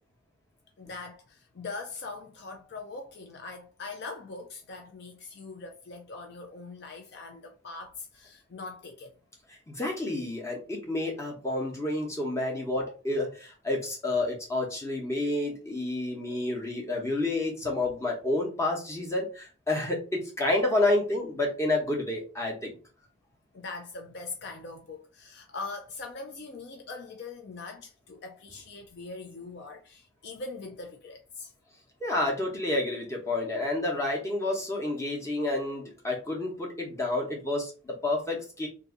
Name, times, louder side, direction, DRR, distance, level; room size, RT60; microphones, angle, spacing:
voice 1, 0.8-9.1 23.5-31.5, left 3 dB, 55° left, 0.4 m, -42 dB
voice 2, 9.7-22.8 32.0-38.7, left 2 dB, 15° left, 0.9 m, -29 dB
2.6 x 2.6 x 3.7 m
head